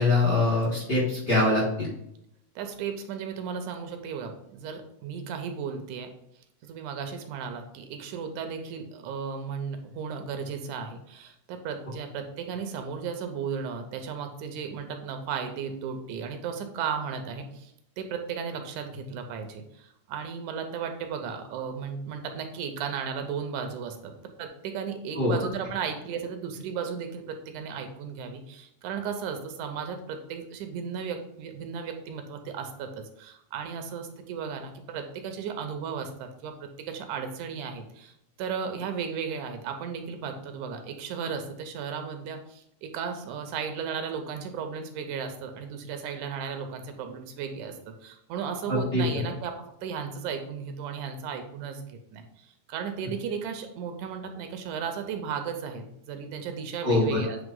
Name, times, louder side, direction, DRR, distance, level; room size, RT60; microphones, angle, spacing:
voice 1, 0.0-1.9 25.1-25.3 48.7-49.0 56.8-57.2, left 2 dB, 40° left, -6 dB, 1.4 m, -23 dB
voice 2, 2.6-6.1 6.6-49.5 49.8-57.4, right 6 dB, 80° right, 6 dB, 2.2 m, -35 dB
8.0 x 3.3 x 3.8 m, 0.76 s
omnidirectional pair, 3.5 m